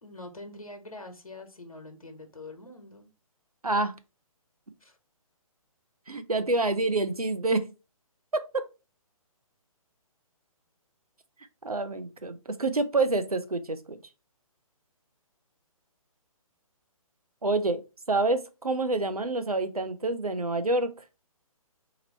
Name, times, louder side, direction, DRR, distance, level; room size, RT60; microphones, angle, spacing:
voice 1, 0.0-3.1 4.8-5.0, left 2 dB, 75° left, 1.1 m, -44 dB
voice 2, 6.1-7.7 8.3-8.6 11.6-14.0 17.4-17.8 18.1-20.9, right 2 dB, 85° right, 0.6 m, -27 dB
3.0 x 2.6 x 4.1 m
figure-of-eight pair, 135°, 19 cm